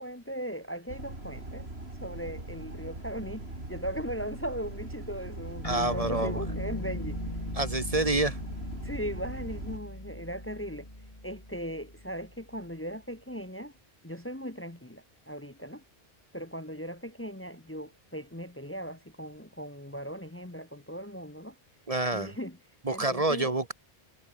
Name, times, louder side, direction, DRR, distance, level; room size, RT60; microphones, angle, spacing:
voice 1, 0.0-1.7 2.0-7.2 8.8-10.9 11.2-13.7 14.0-15.8 16.3-21.5 22.1-22.6 22.9-23.5, equal, 15° left, 1.3 m, -38 dB
sound 1, 0.9-9.8, right 2 dB, 80° right, 5.7 m, -41 dB
sound 2, 5.6-12.5, left 1 dB, 35° left, 6.2 m, -39 dB
voice 2, 5.6-6.4 7.6-8.4 21.9-22.3 22.8-23.7, right 2 dB, 35° right, 1.4 m, -27 dB
omnidirectional pair, 1.1 m